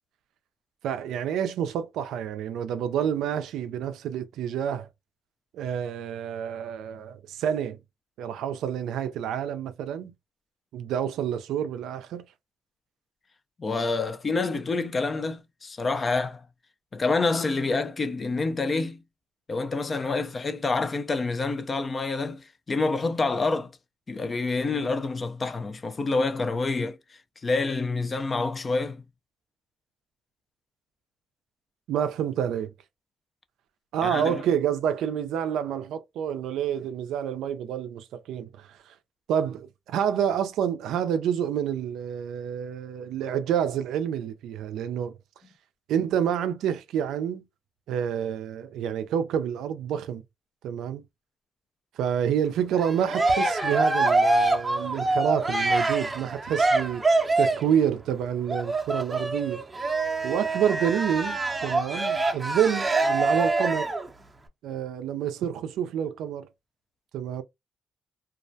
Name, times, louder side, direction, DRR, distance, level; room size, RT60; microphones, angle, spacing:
voice 1, 0.8-4.9 5.5-7.8 8.2-10.1 10.7-12.2 31.9-32.7 33.9-38.9 39.3-45.2 45.9-47.4 47.9-50.2 50.6-51.0 52.0-57.0 57.4-59.6 60.2-63.9 64.6-66.5 67.1-67.4, right 9 dB, 85° right, 0.3 m, -28 dB
voice 2, 13.6-16.4 16.9-19.0 19.5-23.7 24.1-27.0 27.4-29.0 34.0-34.3, left 3 dB, 35° left, 0.4 m, -27 dB
Cheering, 52.7-57.7 58.5-64.1, right 2 dB, 20° right, 0.5 m, -25 dB
2.2 x 2.1 x 2.6 m
cardioid pair, 90°, 0 cm